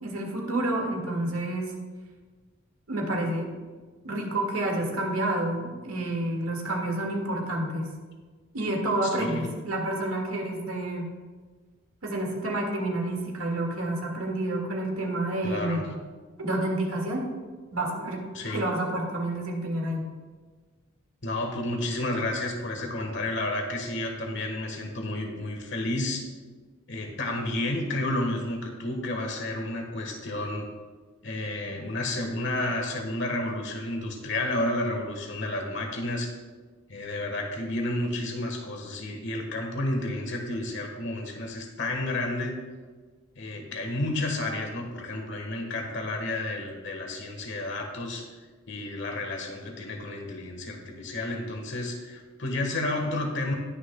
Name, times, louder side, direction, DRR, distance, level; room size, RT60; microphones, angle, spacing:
voice 1, 0.0-1.7 2.9-3.5 4.0-7.9 8.5-11.1 12.0-15.8 16.4-17.2 17.7-18.2 18.5-20.1, right 1 dB, 85° right, 0 dB, 1.9 m, -29 dB
voice 2, 15.4-16.0 18.3-18.7 21.2-26.3 26.9-30.7 31.2-36.3 36.9-42.5 43.3-48.3 48.7-53.5, left 1 dB, 55° left, 2 dB, 1.4 m, -31 dB
19.0 x 6.6 x 2.2 m, 1.4 s
head